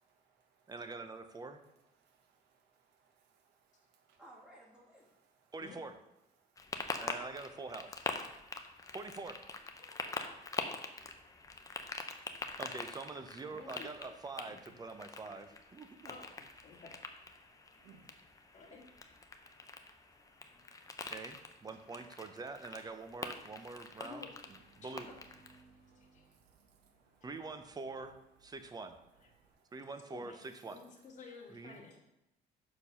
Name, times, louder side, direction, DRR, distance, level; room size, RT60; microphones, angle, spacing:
voice 1, 0.0-0.7 2.0-4.2 6.4-7.0 8.3-8.9 11.0-11.9 12.2-12.3 17.5-18.5 19.3-20.3 20.6-21.1 26.1-27.2 29.4-29.7, right 6 dB, 90° right, 5 dB, 1.2 m, -70 dB
voice 2, 0.7-1.6 5.5-5.9 7.0-8.1 8.9-9.4 12.6-16.1 21.1-25.1 27.2-29.0 29.7-30.8 31.5-31.8, right 3 dB, 25° right, 8 dB, 0.7 m, -45 dB
voice 3, 4.2-5.1 9.9-12.3 14.9-15.8 20.4-20.9, equal, 5° right, -5 dB, 2.8 m, -63 dB
sound 1, 6.6-25.6, left 3 dB, 20° left, 0.7 m, -45 dB
voice 4, 13.5-13.9 14.4-14.7 16.1-17.0 18.4-18.8 24.0-24.3 24.8-25.2 26.0-26.2 29.2-29.3 30.1-30.4 30.7-32.0, left 5 dB, 45° left, -2 dB, 2.1 m, -53 dB
sound 2, 23.7-29.5, right 4 dB, 65° right, 2.1 m, -66 dB
6.7 x 4.5 x 5.6 m, 0.90 s
cardioid pair, 110°, 17 cm